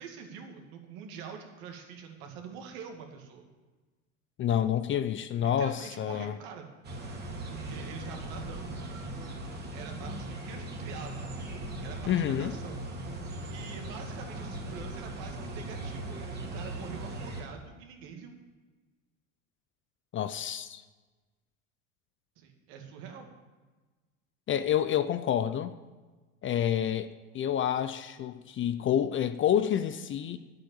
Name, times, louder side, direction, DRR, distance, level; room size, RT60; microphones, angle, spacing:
voice 1, 0.0-3.4 5.4-6.7 7.5-8.8 9.7-11.4 11.8-12.9 13.5-16.2 16.5-18.3 22.4-23.3, right 6 dB, 65° right, 2.2 m, -45 dB
voice 2, 4.4-6.3 12.1-12.5 20.1-20.8 24.5-25.7 26.4-30.4, left 10 dB, 30° left, 0.6 m, -28 dB
sound 1, 6.8-17.4, right 1 dB, 25° right, 2.5 m, -39 dB
10.0 x 7.9 x 7.1 m
hypercardioid pair, 95°, 38 cm